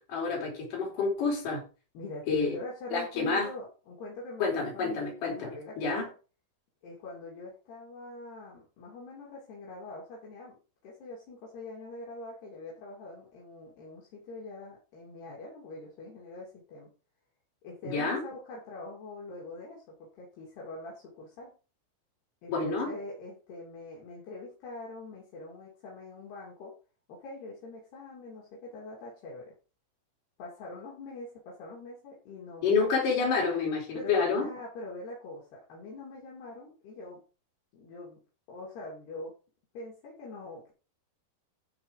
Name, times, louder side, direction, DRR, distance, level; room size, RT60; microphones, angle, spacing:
voice 1, 0.0-1.6 2.3-2.6 2.9-3.5 4.4-5.5 5.8-6.1 17.8-18.2 22.5-22.9 32.6-34.5, left 4 dB, 45° left, -1 dB, 5.6 m, -28 dB
voice 2, 1.9-6.0 6.8-10.6 10.8-16.9 17.6-21.5 22.4-26.7 27.1-29.5 30.4-32.9 33.2-33.3 33.9-37.2 37.7-38.2 38.5-39.3 39.7-40.7, left 2 dB, 60° left, -4 dB, 4.9 m, -44 dB
15.0 x 5.1 x 5.0 m, 0.34 s
omnidirectional pair, 5.3 m